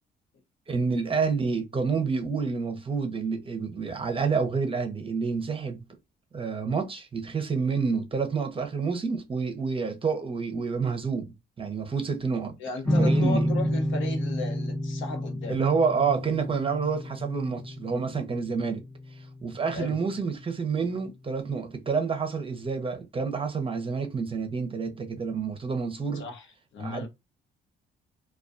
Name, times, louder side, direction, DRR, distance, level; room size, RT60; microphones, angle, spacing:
voice 1, 0.7-5.8 6.3-12.5 13.0-13.5 15.5-18.8 19.1-26.2 26.8-27.1, right 5 dB, 25° right, 0.6 m, -28 dB
voice 2, 12.6-15.6 19.7-19.9 26.1-26.5 26.7-27.1, left 3 dB, 75° left, 0.8 m, -35 dB
sound 1, 12.8-20.1, equal, 10° left, 0.3 m, -29 dB
2.3 x 2.2 x 2.5 m
cardioid pair, 90°, 20 cm